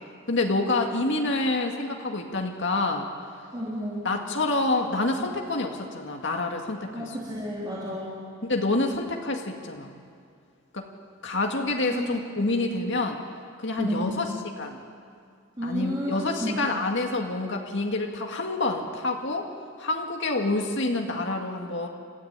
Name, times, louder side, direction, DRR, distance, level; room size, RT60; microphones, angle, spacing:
voice 1, 0.3-3.1 4.0-7.1 8.4-9.9 10.7-10.9 11.2-13.2 13.6-14.3 14.6-14.8 15.6-19.5 19.8-21.9, left 2 dB, 60° left, 2 dB, 2.1 m, -27 dB
voice 2, 3.5-4.1 6.9-8.2 11.8-12.1 13.8-14.2 15.6-16.6, equal, 20° right, -7 dB, 3.8 m, -31 dB
30.0 x 13.5 x 9.1 m, 2.2 s
head